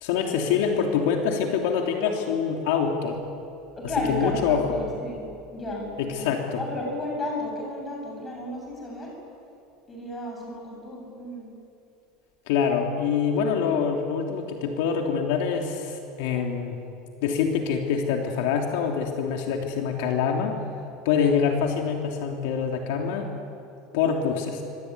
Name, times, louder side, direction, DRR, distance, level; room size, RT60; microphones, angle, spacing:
voice 1, 0.0-3.2 4.1-4.7 6.0-6.6 12.5-16.8 17.2-20.6 21.0-23.3 23.9-24.6, left 6 dB, 70° left, 2 dB, 3.1 m, -25 dB
voice 2, 3.8-5.3 5.5-9.2 9.9-11.5, left 1 dB, 15° left, 0 dB, 7.7 m, -33 dB
25.0 x 24.5 x 9.7 m, 2.7 s
cardioid pair, 175°, 0 cm